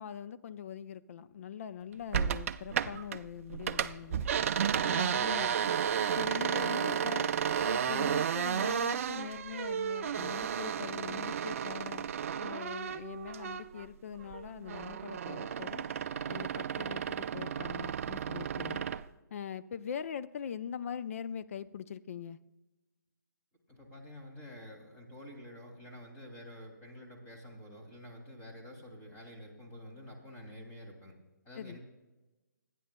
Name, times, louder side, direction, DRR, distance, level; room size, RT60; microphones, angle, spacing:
voice 1, 0.0-4.3 4.8-5.8 6.2-7.3 7.6-12.1 12.4-15.9 16.3-18.8 19.3-22.4 31.5-31.8, left 8 dB, 45° left, 14 dB, 0.5 m, -42 dB
sound 1, 2.1-3.2 3.5-13.9 14.2-19.0, right 8 dB, 45° right, 0.4 m, -33 dB
voice 2, 23.7-31.2 31.4-31.8, equal, 20° left, 1 dB, 2.5 m, -49 dB
25.0 x 9.9 x 2.2 m, 1.1 s
figure-of-eight pair, 140°, 10 cm